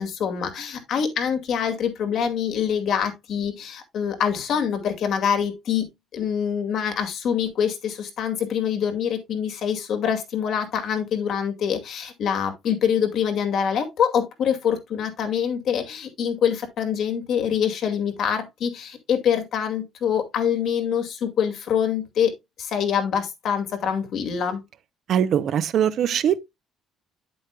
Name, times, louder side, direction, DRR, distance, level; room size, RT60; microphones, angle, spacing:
voice 1, 0.0-5.8 6.1-22.3 22.6-24.6, left 8 dB, 60° left, 2.2 m, -25 dB
voice 2, 25.1-26.4, right 9 dB, 55° right, 0.7 m, -21 dB
9.2 x 7.7 x 2.3 m
cardioid pair, 125°, 0 cm